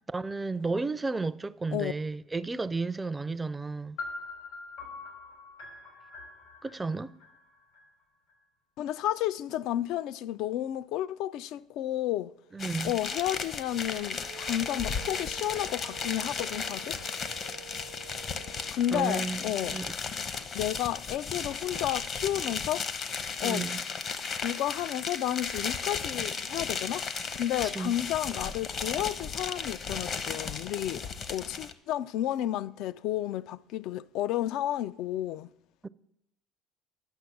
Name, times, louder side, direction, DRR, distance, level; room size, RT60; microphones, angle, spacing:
voice 1, 0.0-4.0 6.6-7.1 12.5-12.9 18.9-19.9 23.4-23.8 27.6-27.9 35.8-35.9, right 3 dB, 20° right, 0.4 m, -33 dB
sound 1, 4.0-7.8, left 3 dB, 85° left, 3.1 m, -43 dB
voice 2, 8.8-12.3 12.8-17.0 18.7-19.8 20.5-22.9 23.4-23.7 24.4-27.1 27.4-31.0 31.3-35.5, left 12 dB, 65° left, 0.3 m, -32 dB
sound 2, 12.6-31.7, left 5 dB, 50° left, 0.8 m, -35 dB
sound 3, 13.9-18.7, right 12 dB, 85° right, 0.9 m, -49 dB
10.5 x 6.2 x 5.9 m
hypercardioid pair, 70°, 0 cm